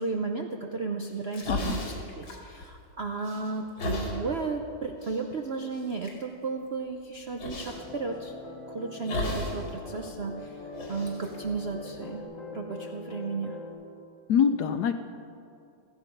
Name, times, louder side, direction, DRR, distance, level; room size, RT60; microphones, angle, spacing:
voice 1, 0.0-1.8 2.2-8.3 8.7-10.6 10.9-12.3 12.5-13.6, right 4 dB, 60° right, 4 dB, 0.6 m, -34 dB
sound 1, 1.1-2.9 3.2-4.2 5.0-5.2 5.7-6.2 7.4-7.8 9.1-9.7 10.0-10.1 10.7-12.2, left 1 dB, 90° left, 3.5 m, -34 dB
sound 2, 7.7-13.7, left 3 dB, 40° left, 3.2 m, -42 dB
voice 2, 14.3-14.9, left 7 dB, 65° left, 8 dB, 1.1 m, -24 dB
15.5 x 15.0 x 5.3 m, 2.5 s
omnidirectional pair, 2.1 m